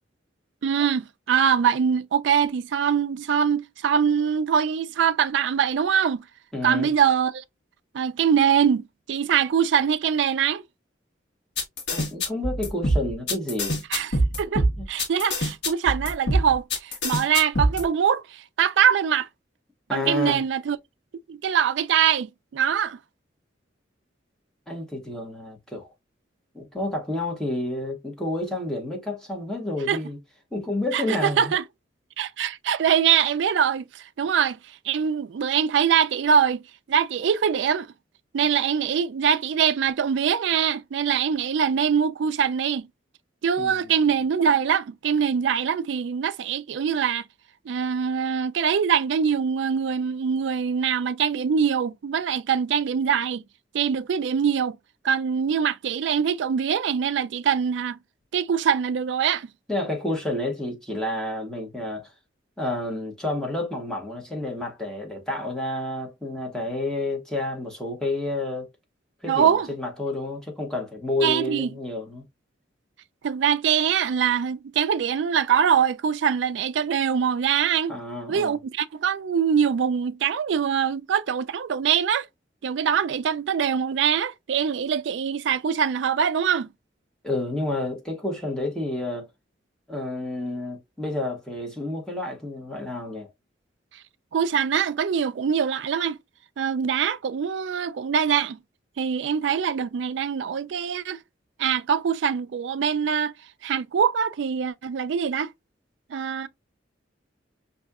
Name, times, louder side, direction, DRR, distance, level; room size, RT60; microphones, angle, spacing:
voice 1, 0.6-6.2 6.6-7.4 7.9-10.6 13.9-19.3 19.9-20.8 21.3-23.0 29.9-30.0 30.9-31.6 32.2-34.6 34.9-36.6 36.9-37.9 38.3-42.9 43.4-47.2 47.7-53.4 53.7-54.8 55.0-58.0 58.3-59.5 69.3-69.7 71.2-71.7 73.2-77.9 78.3-82.3 82.6-86.7 94.3-96.2 96.6-98.6 99.0-101.2 101.6-103.3 103.6-105.5 106.1-106.5, right 7 dB, 75° right, 0.3 m, -23 dB
voice 2, 6.5-6.9 11.9-13.8 14.8-14.9 19.9-20.4 24.7-25.9 26.5-30.2 30.5-31.5 43.6-43.9 59.7-62.1 62.6-68.7 69.2-72.2 77.9-78.6 87.2-89.3 89.9-93.3, left 1 dB, 5° left, 1.0 m, -30 dB
sound 1, 11.6-17.8, equal, 65° left, 1.3 m, -24 dB
5.2 x 2.7 x 2.3 m
head